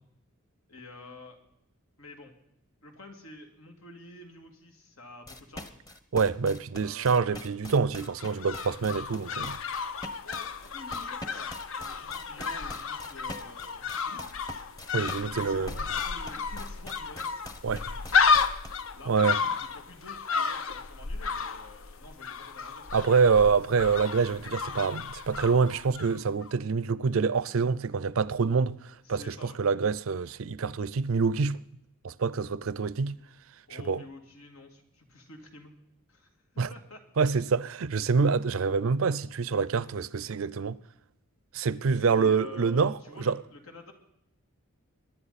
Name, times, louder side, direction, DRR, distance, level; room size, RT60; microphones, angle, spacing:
voice 1, 0.7-1.4 2.0-2.3 2.8-5.8 6.8-7.6 10.2-14.3 15.2-17.3 17.6-18.4 18.9-23.1 29.0-29.6 33.7-35.7 36.1-36.3 36.7-37.5 38.0-38.2 41.9-43.9, left 2 dB, 85° left, 2.5 m, -49 dB
sound 1, 5.3-18.8, left 1 dB, 20° left, 0.9 m, -44 dB
voice 2, 6.1-9.6 14.9-15.7 17.6-17.8 19.1-19.4 22.9-31.6 32.0-33.2 33.7-34.0 36.6-36.7 37.2-40.8 41.5-43.4, right 5 dB, 70° right, 0.5 m, -26 dB
sound 2, 8.0-26.2 26.4-26.5, left 5 dB, 70° left, 0.7 m, -32 dB
23.0 x 10.5 x 4.2 m
head